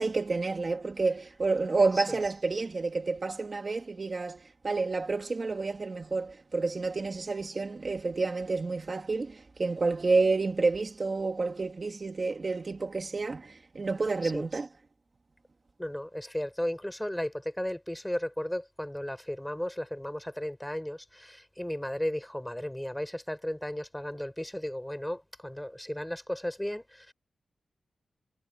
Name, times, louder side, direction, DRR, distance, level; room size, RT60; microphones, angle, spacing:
voice 1, 0.0-14.7, right 3 dB, 35° right, 2.1 m, -29 dB
voice 2, 15.8-27.1, left 1 dB, 5° left, 4.5 m, -35 dB
wide cardioid pair, 120°, 0 cm